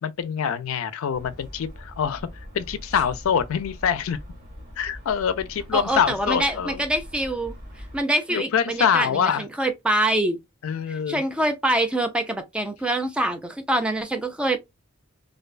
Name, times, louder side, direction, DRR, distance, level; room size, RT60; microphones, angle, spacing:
voice 1, 0.0-2.2 2.5-4.2 4.8-6.8 8.3-9.4 10.6-11.2, left 7 dB, 80° left, 0.4 m, -25 dB
sound 1, 1.1-8.0, equal, 45° right, 1.7 m, -42 dB
voice 2, 5.7-7.5 7.9-10.4 11.1-14.6, right 1 dB, 5° right, 0.3 m, -25 dB
2.5 x 2.2 x 2.3 m
head